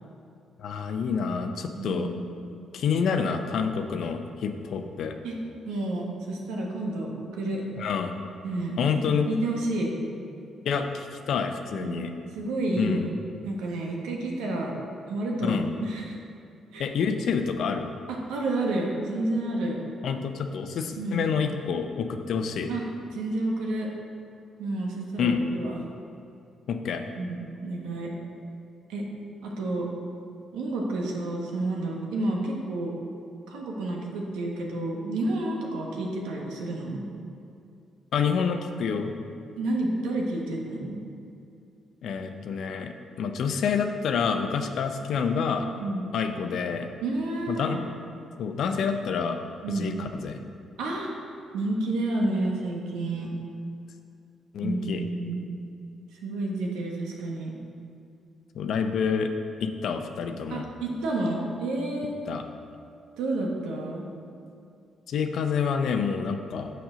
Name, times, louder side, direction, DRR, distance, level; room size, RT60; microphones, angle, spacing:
voice 1, 0.6-2.1 2.7-5.1 7.8-8.1 8.8-9.3 10.7-12.1 12.8-13.1 15.4-15.7 16.8-17.9 20.0-22.7 25.2-25.4 26.7-27.0 38.1-39.1 42.0-42.9 43.2-45.7 46.1-46.9 47.5-47.8 48.4-49.4 49.7-50.4 54.5-55.0 58.5-59.3 59.6-60.6 62.3-62.4 65.1-66.7, left 6 dB, 70° left, 6 dB, 0.6 m, -28 dB
voice 2, 1.8-2.2 5.2-5.4 5.6-7.6 8.4-9.9 11.8-12.0 12.3-13.1 13.4-14.7 15.1-16.1 16.7-16.9 18.1-19.8 21.0-21.2 22.7-22.8 23.1-23.9 24.6-25.8 27.1-28.1 28.9-29.1 29.4-29.9 30.5-32.9 33.5-37.1 39.6-41.0 45.8-46.1 47.0-47.8 49.6-49.9 50.8-51.1 51.5-53.3 54.6-55.4 56.2-57.5 60.5-62.2 63.2-64.1, right 2 dB, 90° right, -1 dB, 1.2 m, -30 dB
7.0 x 6.2 x 5.0 m, 2.6 s
supercardioid pair, 70°, 0 cm